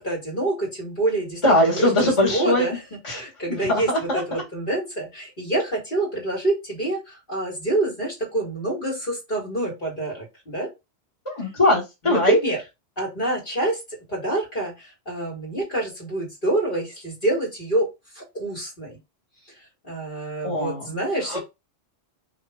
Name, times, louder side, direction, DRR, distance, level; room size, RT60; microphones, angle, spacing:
voice 1, 0.0-10.7 12.0-12.6 13.0-17.9 18.1-19.0 19.8-21.4, right 2 dB, 50° left, -2 dB, 2.0 m, -27 dB
voice 2, 1.4-2.7 3.0-4.4 11.3-12.4 20.4-20.9 21.3-21.4, left 1 dB, 25° left, -3 dB, 1.8 m, -21 dB
5.0 x 2.7 x 3.5 m, 0.23 s
omnidirectional pair, 1.2 m